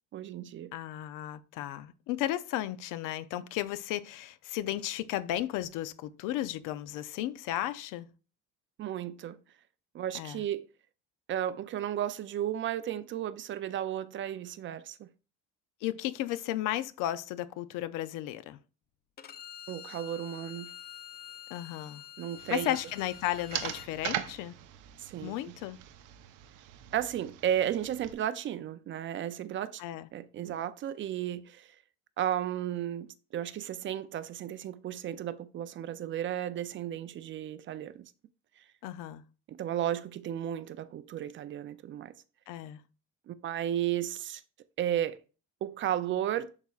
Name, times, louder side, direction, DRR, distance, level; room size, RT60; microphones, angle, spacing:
voice 1, 0.1-0.7 8.8-9.4 9.9-10.7 11.3-15.1 19.7-20.7 22.2-22.8 25.0-25.6 26.9-29.8 30.1-31.7 32.2-38.1 39.5-42.1 43.3-44.4 44.8-45.2 45.6-46.5, right 11 dB, 40° right, 0.4 m, -34 dB
voice 2, 0.7-8.1 10.1-10.4 15.8-18.6 21.5-22.0 22.5-24.6 25.2-25.8 29.8-30.1 38.8-39.2 42.5-42.8, left 13 dB, 80° left, 0.6 m, -34 dB
Bowed string instrument, 19.2-23.9, left 12 dB, 30° left, 0.4 m, -47 dB
sound 1, 22.4-28.1, right 11 dB, 75° right, 0.8 m, -41 dB
10.5 x 4.1 x 2.4 m
cardioid pair, 140°, 32 cm